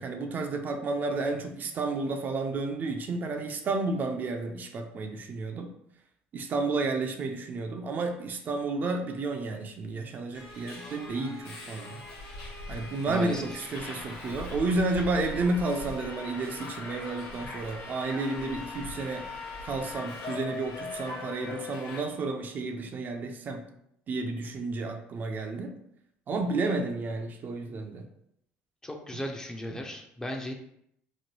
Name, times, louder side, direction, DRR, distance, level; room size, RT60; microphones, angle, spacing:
voice 1, 0.0-5.7 6.3-12.0 12.7-19.3 19.6-23.6 24.1-25.7 26.3-28.1 29.7-29.8, right 3 dB, 45° right, 5 dB, 0.4 m, -31 dB
Subway metro underground, 10.3-22.0, left 3 dB, 70° left, 1.0 m, -40 dB
voice 2, 13.1-13.6 28.8-30.5, left 1 dB, 15° left, 3 dB, 0.5 m, -36 dB
3.0 x 2.2 x 3.0 m, 0.74 s
supercardioid pair, 85°, 4 cm